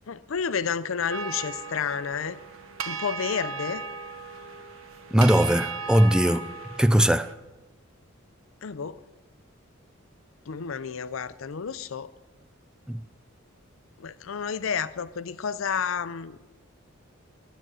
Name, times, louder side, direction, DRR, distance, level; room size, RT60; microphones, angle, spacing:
voice 1, 0.1-2.4 2.9-3.8 8.6-9.0 10.5-12.1 14.0-16.4, left 6 dB, 80° left, 0.5 m, -30 dB
sound 1, 1.1-7.3, right 4 dB, 85° right, 0.9 m, -36 dB
voice 2, 5.1-7.3 12.9-13.0, right 1 dB, 5° right, 0.3 m, -20 dB
12.5 x 9.0 x 6.2 m
head